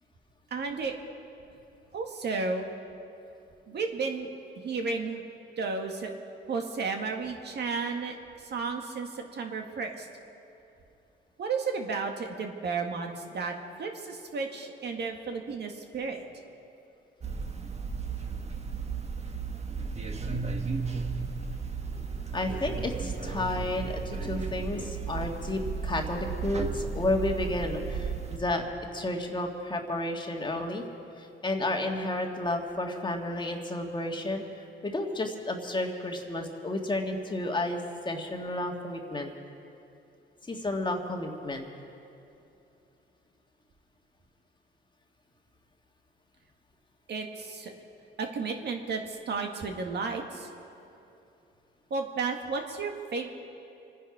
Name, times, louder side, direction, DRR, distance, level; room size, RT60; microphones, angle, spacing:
voice 1, 0.5-0.9 1.9-2.7 3.7-4.3 4.6-5.2 5.6-6.1 6.5-10.1 11.4-16.2 47.1-47.7 48.2-50.5 51.9-53.3, right 4 dB, 55° right, 3 dB, 1.8 m, -33 dB
sound 1, 17.2-28.4, right 5 dB, 35° right, 1.4 m, -34 dB
voice 2, 22.3-28.6 28.9-30.8 31.2-39.3 40.4-41.7, left 2 dB, 25° left, 2 dB, 1.8 m, -32 dB
26.5 x 10.0 x 5.0 m, 2.8 s
cardioid pair, 90°, 20 cm